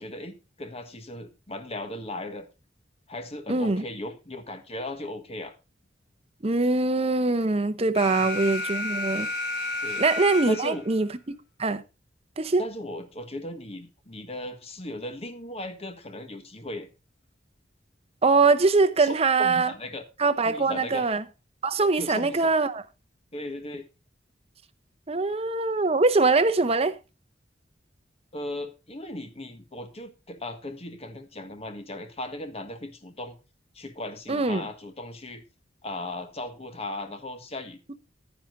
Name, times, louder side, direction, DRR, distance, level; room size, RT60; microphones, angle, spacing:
voice 1, 0.0-2.5 3.1-5.5 8.0-8.3 9.8-10.0 10.5-10.8 12.6-16.9 19.0-20.0 20.4-21.1 22.0-22.5 23.3-23.9 28.3-33.4 33.7-35.4 35.8-37.8, left 1 dB, 35° left, 1.4 m, -37 dB
voice 2, 3.5-3.8 6.4-9.3 10.0-11.1 11.6-11.8 12.4-12.6 18.2-19.7 20.2-21.2 21.6-22.8 25.1-27.0 34.3-34.7, right 3 dB, 35° right, 0.8 m, -23 dB
Alarm, 7.9-10.9, left 2 dB, 65° left, 6.6 m, -31 dB
10.0 x 9.9 x 3.9 m
head